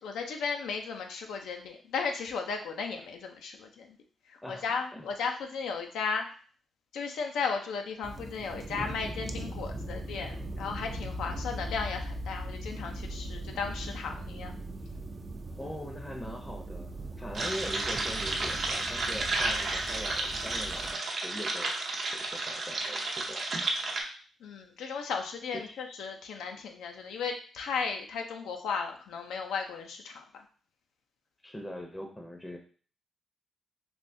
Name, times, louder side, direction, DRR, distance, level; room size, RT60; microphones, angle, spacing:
voice 1, 0.0-4.0 4.3-6.2 6.9-14.5 24.4-30.2, left 5 dB, 85° left, 3 dB, 0.4 m, -35 dB
sound 1, 8.0-20.9, right 1 dB, 35° right, 0.4 m, -39 dB
voice 2, 15.6-16.9 17.2-23.5 25.5-25.8 31.4-32.6, equal, 15° left, 2 dB, 0.6 m, -41 dB
sound 2, 17.3-24.0, right 2 dB, 60° right, 0.7 m, -32 dB
3.4 x 2.6 x 2.6 m, 0.42 s
cardioid pair, 75°, 0 cm